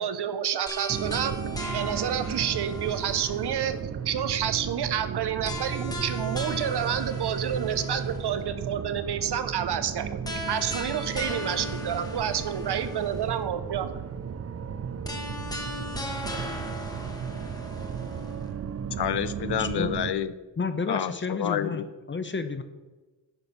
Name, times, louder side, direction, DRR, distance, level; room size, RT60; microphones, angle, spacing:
voice 1, 0.0-10.2 10.5-14.0, right 9 dB, 75° right, 0.8 m, -29 dB
sound 1, 0.7-3.8 5.4-8.4 10.2-13.4 15.0-18.5, left 1 dB, 10° left, 1.2 m, -38 dB
sound 2, 0.9-20.1, right 7 dB, 40° right, 0.5 m, -35 dB
voice 2, 19.0-20.3 20.9-21.9, left 10 dB, 75° left, 0.6 m, -29 dB
voice 3, 19.6-19.9 20.6-22.6, left 4 dB, 30° left, 0.6 m, -31 dB
10.0 x 4.4 x 6.6 m
wide cardioid pair, 135°, 40 cm